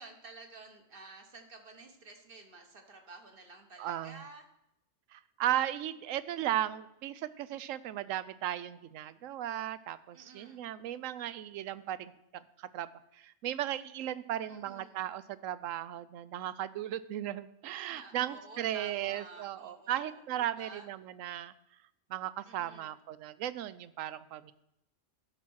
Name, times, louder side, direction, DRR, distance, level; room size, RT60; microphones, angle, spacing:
voice 1, 0.0-4.4 10.1-10.6 14.5-15.0 17.9-20.2 20.6-20.9 22.5-22.9, right 3 dB, 45° right, 4 dB, 1.3 m, -51 dB
voice 2, 3.8-4.2 5.1-21.5 22.1-24.5, right 12 dB, 80° right, 16 dB, 0.9 m, -36 dB
11.0 x 5.9 x 6.2 m, 0.83 s
omnidirectional pair, 1.3 m